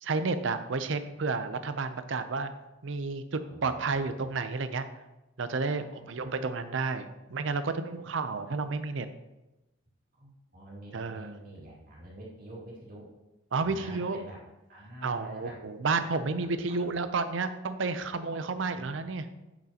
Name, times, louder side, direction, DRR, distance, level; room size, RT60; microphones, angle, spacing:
voice 1, 0.0-2.5 2.8-4.9 5.4-9.1 10.9-11.3 13.5-14.2 15.0-19.3, right 4 dB, 65° right, 11 dB, 0.5 m, -31 dB
voice 2, 3.5-4.3 5.7-6.3 10.2-13.1 13.6-14.4 14.7-15.6 16.4-16.8 17.9-18.2 18.5-18.9, right 1 dB, 45° right, -4 dB, 2.3 m, -47 dB
8.9 x 6.1 x 2.9 m, 1.0 s
head